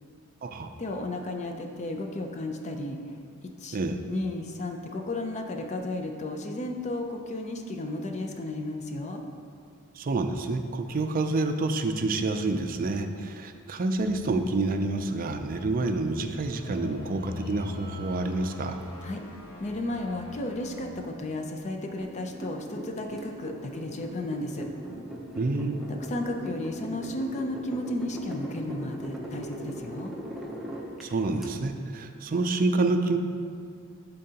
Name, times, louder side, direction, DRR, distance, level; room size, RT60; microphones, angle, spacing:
voice 1, 0.8-3.0 3.6-3.8 4.1-9.2 19.0-19.2 19.6-24.7 25.9-30.1, left 1 dB, 35° left, 3 dB, 0.5 m, -33 dB
voice 2, 10.0-18.8 25.4-25.9 31.0-33.2, right 2 dB, 45° right, 6 dB, 0.4 m, -28 dB
sound 1, 13.9-21.0, left 3 dB, 60° left, 1.2 m, -42 dB
sound 2, 22.0-31.5, right 1 dB, ahead, 0.7 m, -39 dB
11.0 x 3.9 x 2.8 m, 2.3 s
head